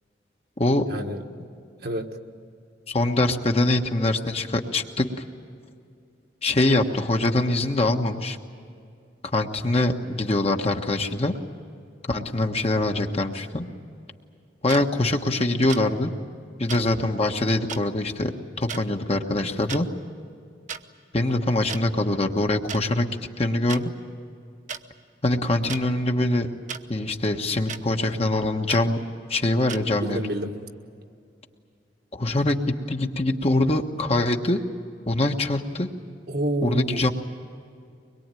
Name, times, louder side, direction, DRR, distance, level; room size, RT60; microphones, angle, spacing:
voice 1, 0.9-1.2 1.8-2.2 30.0-30.7 36.3-37.1, right 1 dB, 60° right, 3 dB, 1.6 m, -29 dB
voice 2, 2.9-5.2 6.4-8.4 9.3-11.4 12.1-13.7 14.6-16.1 16.6-18.3 18.6-19.9 21.1-23.1 23.4-23.9 25.2-26.5 26.9-29.0 29.3-30.2 32.1-34.6 35.1-35.9 36.6-37.1, left 2 dB, 35° left, 4 dB, 1.3 m, -23 dB
sound 1, 14.7-14.8 15.7-15.9 16.7-16.8 17.7-17.8 18.7-18.8 19.6-19.8 20.7-20.8 21.7-21.8 22.7-22.8 23.7-23.8 24.7-24.8 25.7-25.8 26.7-26.8 27.7-27.8 28.7-28.8 29.7-29.8, right 6 dB, 45° right, 1.0 m, -34 dB
24.0 x 22.0 x 9.1 m, 2.4 s
head